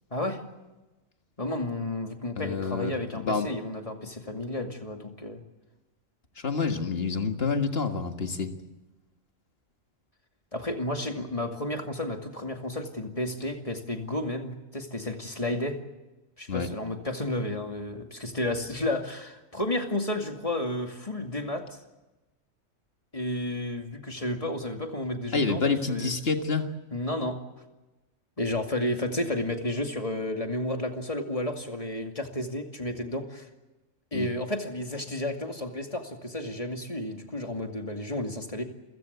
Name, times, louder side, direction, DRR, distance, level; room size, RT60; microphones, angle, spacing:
voice 1, 0.1-0.4 1.4-5.4 10.5-15.8 16.4-21.8 23.1-25.6 25.9-26.1 26.9-27.4 28.4-33.5 34.1-38.6, left 1 dB, 25° left, 4 dB, 2.4 m, -32 dB
voice 2, 2.4-3.5 6.4-8.5 16.5-16.7 25.3-26.7 34.1-34.3, left 4 dB, 50° left, 6 dB, 2.0 m, -28 dB
29.0 x 15.5 x 8.2 m, 1.1 s
omnidirectional pair, 1.3 m